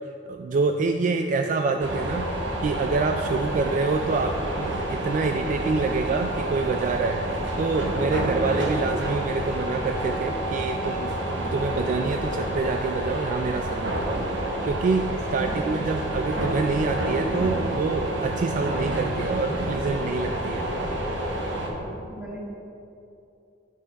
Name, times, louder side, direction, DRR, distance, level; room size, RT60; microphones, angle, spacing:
voice 1, 0.2-2.3 2.6-7.2 7.6-20.6, right 4 dB, 45° right, 5 dB, 0.3 m, -27 dB
sound 1, 1.8-21.7, right 1 dB, 70° right, 1.1 m, -29 dB
voice 2, 15.5-15.9 20.5-22.4, equal, 10° right, -5 dB, 1.5 m, -40 dB
9.2 x 5.8 x 4.1 m, 2.7 s
head